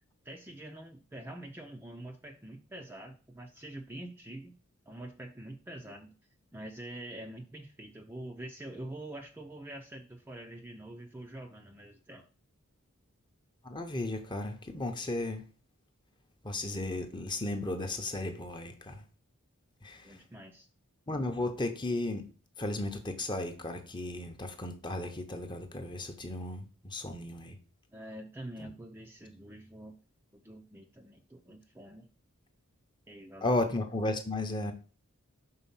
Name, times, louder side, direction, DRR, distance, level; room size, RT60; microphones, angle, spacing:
voice 1, 0.2-4.6 4.9-6.1 6.5-12.3 20.0-20.7 27.9-30.0 30.3-32.1 33.1-33.6, right 1 dB, 10° right, 0.5 m, -45 dB
voice 2, 13.6-15.5 16.4-19.0 19.8-20.2 21.1-22.3 22.6-27.6 28.6-28.7 33.4-34.7, left 2 dB, 20° left, 0.8 m, -34 dB
5.6 x 4.0 x 5.5 m
head